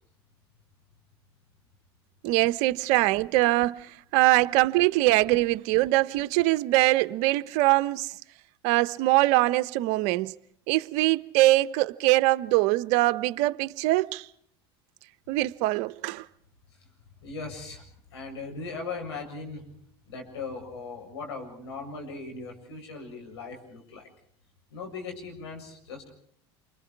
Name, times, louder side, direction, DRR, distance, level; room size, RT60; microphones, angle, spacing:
voice 1, 2.2-8.1 8.6-10.3 10.7-14.3 15.3-16.3, right 19 dB, 65° right, 1.0 m, -23 dB
voice 2, 17.2-19.7 20.1-24.1 24.7-26.1, left 4 dB, 85° left, 7.5 m, -39 dB
30.0 x 25.0 x 4.8 m
hypercardioid pair, 85°, 13 cm